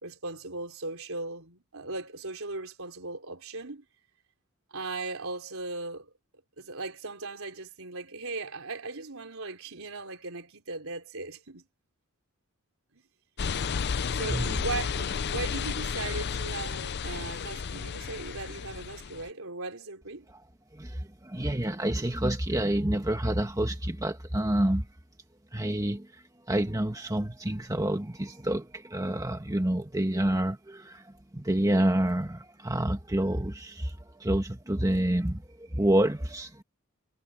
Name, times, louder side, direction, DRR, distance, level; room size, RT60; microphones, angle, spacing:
voice 1, 0.0-3.9 4.7-6.1 6.6-11.6 12.9-13.0 14.1-20.3, right 3 dB, 75° right, 4.2 m, -38 dB
sound 1, 13.4-19.3, left 6 dB, 50° left, 0.5 m, -32 dB
voice 2, 14.3-14.6 20.7-24.9 25.5-36.6, right 1 dB, 15° right, 1.5 m, -28 dB
head